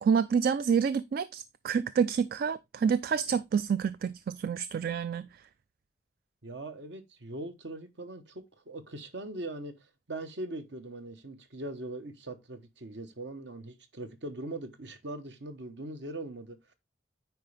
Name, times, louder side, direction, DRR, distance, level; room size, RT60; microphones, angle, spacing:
voice 1, 0.0-5.3, right 6 dB, 55° right, 0.3 m, -28 dB
voice 2, 6.4-16.6, right 2 dB, 70° right, 1.1 m, -41 dB
9.2 x 4.8 x 3.3 m
head